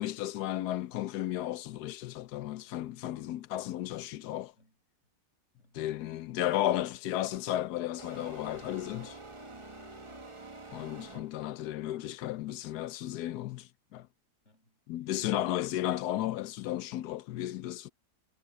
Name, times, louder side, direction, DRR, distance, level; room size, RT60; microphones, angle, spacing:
voice 1, 0.0-4.5 5.7-9.2 10.7-14.1 14.9-17.9, left 13 dB, 75° left, 1.1 m, -34 dB
voice 2, 5.6-5.9 9.5-10.6 14.4-14.8, left 1 dB, 45° left, 6.0 m, -66 dB
sound 1, 7.3-7.5 8.0-11.6, right 3 dB, 20° right, 1.2 m, -47 dB
omnidirectional pair, 1.7 m